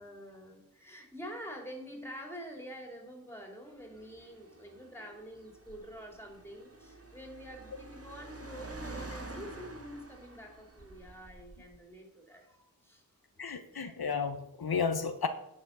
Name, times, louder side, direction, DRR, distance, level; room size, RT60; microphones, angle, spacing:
voice 1, 0.0-13.0 13.3-14.0, equal, 5° left, 2 dB, 3.6 m, -47 dB
Car, 3.8-11.8, right 2 dB, 40° right, 1.9 m, -48 dB
voice 2, 13.4-15.3, left 5 dB, 85° left, 8 dB, 1.0 m, -32 dB
9.8 x 7.3 x 6.1 m, 0.82 s
wide cardioid pair, 50°, 36 cm